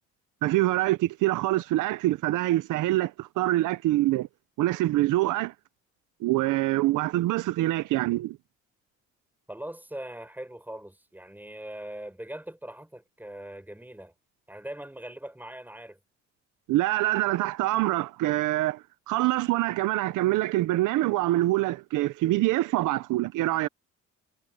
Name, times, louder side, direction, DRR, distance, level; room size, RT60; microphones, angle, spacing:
voice 1, 0.4-4.3 4.6-5.5 6.2-8.4 16.7-23.7, right 17 dB, 85° right, 0.7 m, -25 dB
voice 2, 9.5-14.1 14.5-16.0, right 1 dB, 5° right, 7.1 m, -41 dB
cardioid pair, 90°, 30 cm